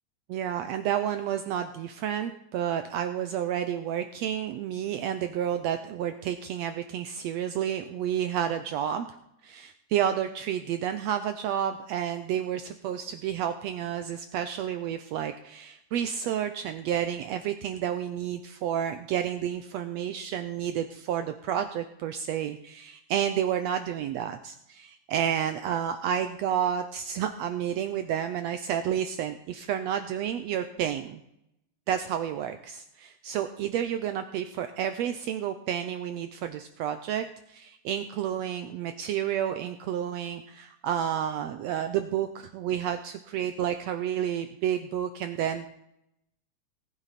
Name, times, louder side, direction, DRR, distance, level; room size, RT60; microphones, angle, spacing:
voice 1, 0.3-9.1 9.4-31.2 31.9-45.7, right 9 dB, 75° right, 9 dB, 1.7 m, -30 dB
18.5 x 9.1 x 4.1 m, 0.79 s
omnidirectional pair, 3.4 m